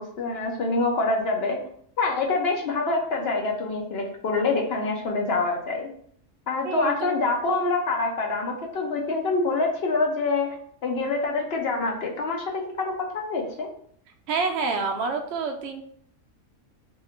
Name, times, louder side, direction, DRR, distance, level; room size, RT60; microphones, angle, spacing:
voice 1, 0.0-1.6 2.0-5.9 6.5-10.5 10.8-13.7, left 3 dB, 60° left, 1 dB, 0.6 m, -26 dB
voice 2, 6.6-7.1 14.3-15.8, right 4 dB, 65° right, 3 dB, 0.7 m, -27 dB
2.8 x 2.5 x 4.2 m, 0.62 s
omnidirectional pair, 1.5 m